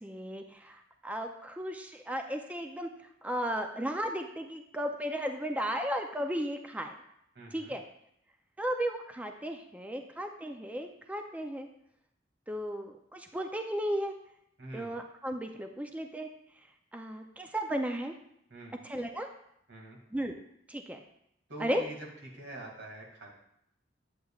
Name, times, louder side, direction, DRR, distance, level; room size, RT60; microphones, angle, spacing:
voice 1, 0.0-2.9 3.2-6.9 7.5-7.8 8.6-11.7 12.5-14.1 14.7-16.3 16.9-18.1 18.8-19.3 20.1-20.3 20.7-21.0 21.6-21.8, equal, 10° right, 4 dB, 0.4 m, -35 dB
voice 2, 7.3-7.7 14.6-14.9 18.5-18.8 19.7-20.0 21.5-23.3, right 2 dB, 85° right, -1 dB, 2.2 m, -45 dB
9.3 x 8.0 x 2.4 m, 0.75 s
head